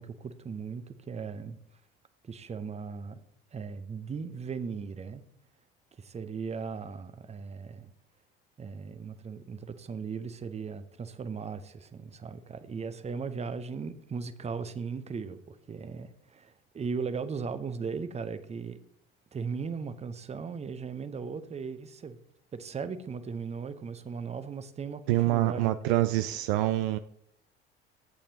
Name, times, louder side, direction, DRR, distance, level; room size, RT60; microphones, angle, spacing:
voice 1, 0.0-1.6 2.2-3.2 3.5-5.2 6.0-7.9 8.6-18.8 19.3-22.2 22.5-25.8, right 5 dB, 20° right, 0.8 m, -37 dB
voice 2, 25.1-27.0, right 16 dB, 60° right, 0.4 m, -26 dB
12.0 x 8.5 x 2.8 m
figure-of-eight pair, 60°, 30 cm